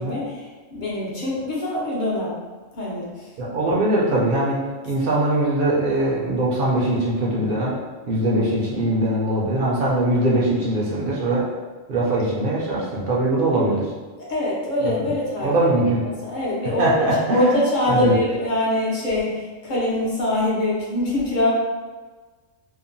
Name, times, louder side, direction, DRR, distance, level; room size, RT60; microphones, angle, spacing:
voice 1, 0.0-2.4 2.7-3.3 14.2-15.5 16.2-21.5, left 1 dB, 45° left, -6 dB, 0.7 m, -24 dB
voice 2, 3.4-4.6 4.9-7.8 8.1-11.4 11.9-13.9 14.8-15.1 15.4-16.1 16.8-17.6 17.8-18.1, right 1 dB, 55° right, -5 dB, 0.6 m, -21 dB
2.8 x 2.1 x 2.5 m, 1.3 s
omnidirectional pair, 1.3 m